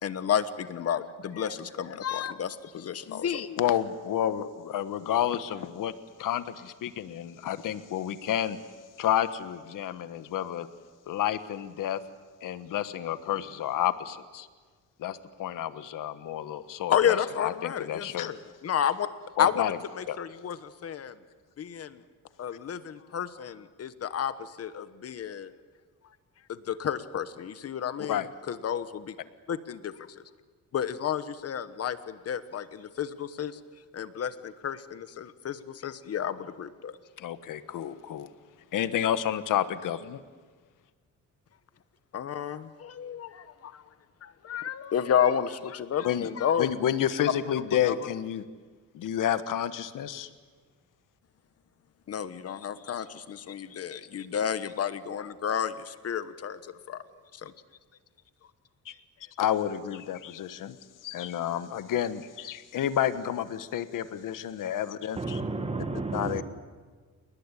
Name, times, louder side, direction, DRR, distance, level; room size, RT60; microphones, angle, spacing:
voice 1, 0.0-3.6 16.9-18.4 18.6-19.1 19.4-21.1 21.6-22.0 22.4-25.5 26.5-28.2 28.5-29.1 29.5-29.9 30.7-33.6 33.9-37.0 42.1-43.8 44.2-46.7 47.8-47.9 52.1-57.0 57.3-57.5, left 8 dB, 50° left, 13 dB, 1.2 m, -31 dB
voice 2, 3.6-5.9 6.2-8.6 9.0-10.7 11.1-12.0 12.4-14.5 15.0-18.4 19.4-19.8 20.1-20.2 28.1-28.3 37.2-38.3 38.7-40.2 46.0-46.3 46.6-48.4 48.9-50.3 58.8-58.9 59.4-60.8 61.0-65.4 66.1-66.4, left 10 dB, 80° left, 12 dB, 1.4 m, -30 dB
voice 3, 65.2-66.4, right 3 dB, 20° right, 8 dB, 1.6 m, -32 dB
28.5 x 19.5 x 9.9 m, 1.5 s
cardioid pair, 165°, 31 cm